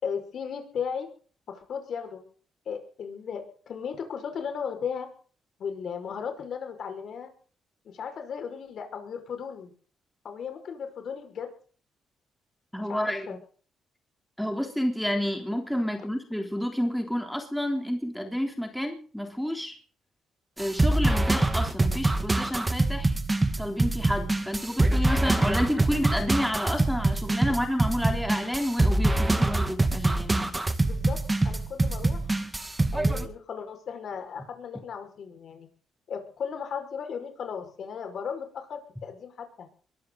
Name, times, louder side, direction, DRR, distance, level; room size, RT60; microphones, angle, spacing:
voice 1, 0.0-1.1 1.5-2.2 2.7-5.1 5.6-7.3 7.8-9.7 10.2-11.5 12.9-13.4 30.8-31.2 31.4-32.2 32.9-35.7 36.1-39.7, left 7 dB, 60° left, 6 dB, 5.5 m, -36 dB
voice 2, 12.7-13.3 14.4-19.8 20.6-23.2 23.6-30.5, equal, ahead, 3 dB, 3.5 m, -30 dB
sound 1, 20.6-33.3, right 2 dB, 15° right, 1.9 m, -25 dB
23.0 x 13.5 x 4.1 m, 0.42 s
cardioid pair, 105°, 0 cm